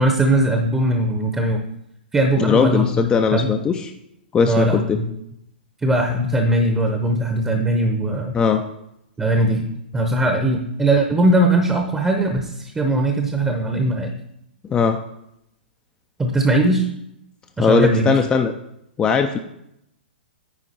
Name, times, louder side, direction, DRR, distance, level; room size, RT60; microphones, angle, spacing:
voice 1, 0.0-1.6 2.1-2.9 3.3-3.5 4.5-5.1 5.8-8.3 9.2-9.6 9.9-14.1 16.2-16.9 17.6-18.2, right 1 dB, 10° right, 4 dB, 0.8 m, -19 dB
voice 2, 2.4-3.9 4.3-5.0 8.3-8.6 14.7-15.0 17.6-18.5 19.0-19.4, left 6 dB, 15° left, 6 dB, 0.4 m, -18 dB
9.5 x 4.5 x 4.2 m, 0.78 s
figure-of-eight pair, 120°, 6 cm